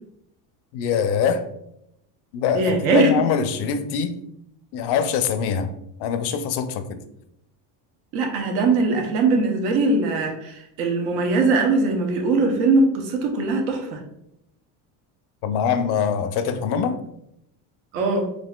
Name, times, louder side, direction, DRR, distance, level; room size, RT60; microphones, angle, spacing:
voice 1, 0.7-1.4 2.3-4.2 4.7-5.7 6.0-7.0 15.4-17.0, left 7 dB, 60° left, 9 dB, 0.5 m, -23 dB
voice 2, 2.5-3.1 8.1-14.0 17.9-18.3, right 3 dB, 85° right, 2 dB, 0.8 m, -21 dB
4.0 x 2.4 x 2.2 m, 0.79 s
supercardioid pair, 105°, 45 cm